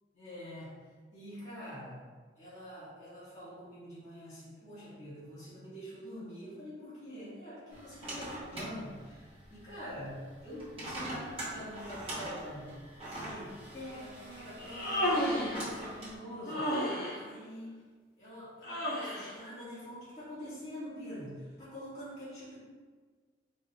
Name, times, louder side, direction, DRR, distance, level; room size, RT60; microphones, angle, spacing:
voice 1, 0.1-0.8 1.1-2.0 2.4-12.7 13.0-16.8 17.1-17.7 18.2-22.6, equal, 35° left, -12 dB, 1.5 m, -45 dB
sound 1, 7.7-16.2, right 1 dB, 30° right, 0.9 m, -44 dB
Human voice, 14.6-15.6 16.5-17.2 18.6-19.3, equal, 55° left, 0.9 m, -32 dB
4.2 x 3.3 x 2.3 m, 1.5 s
head